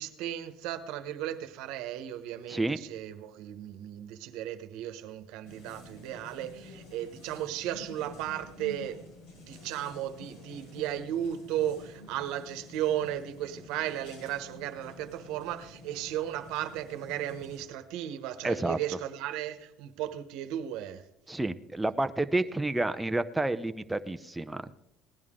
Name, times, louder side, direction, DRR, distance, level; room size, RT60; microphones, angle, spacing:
voice 1, 0.0-9.0 9.4-21.0, right 11 dB, 80° right, 1.1 m, -35 dB
sound 1, 5.4-17.6, left 2 dB, 90° left, 6.7 m, -50 dB
voice 2, 18.4-18.8 21.3-24.8, right 2 dB, 10° right, 0.7 m, -30 dB
18.0 x 10.5 x 3.7 m
cardioid pair, 110°, 0 cm